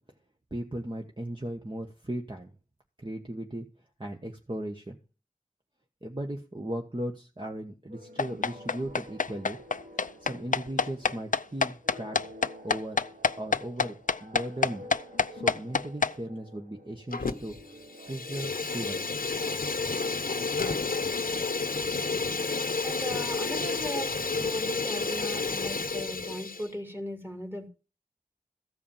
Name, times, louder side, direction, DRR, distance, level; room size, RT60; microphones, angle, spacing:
voice 1, 0.5-2.5 3.0-3.7 4.0-5.0 6.0-9.6 10.2-12.2 12.6-13.0 13.4-14.9 15.3-17.5 18.1-19.1, right 1 dB, 35° right, 1.4 m, -37 dB
sound 1, 7.9-24.3, equal, 80° right, 1.5 m, -51 dB
sound 2, 8.2-16.1, left 5 dB, 65° left, 0.5 m, -26 dB
Fire, 17.1-17.6 17.9-26.7, left 4 dB, 90° left, 0.9 m, -31 dB
voice 2, 22.8-24.1 24.4-27.7, equal, 15° right, 2.5 m, -38 dB
14.0 x 4.9 x 7.4 m
wide cardioid pair, 40°, 15 cm